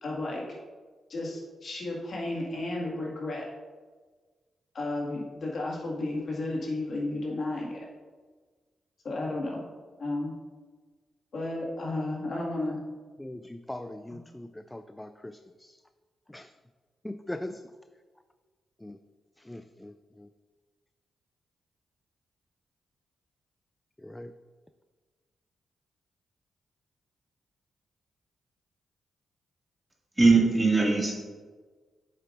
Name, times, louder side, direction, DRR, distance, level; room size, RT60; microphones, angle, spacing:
voice 1, 0.0-0.4 1.1-3.5 4.7-7.9 9.0-9.6 10.0-10.3 11.3-12.8, left 2 dB, 60° left, -3 dB, 1.9 m, -33 dB
voice 2, 13.2-15.7 16.3-16.5 17.0-17.6 18.8-19.0 19.5-19.9 24.0-24.3, left 1 dB, 10° left, 9 dB, 0.3 m, -40 dB
voice 3, 30.2-31.1, right 3 dB, 20° right, -3 dB, 2.2 m, -20 dB
8.2 x 6.6 x 2.6 m, 1.4 s
cardioid pair, 60°, 0 cm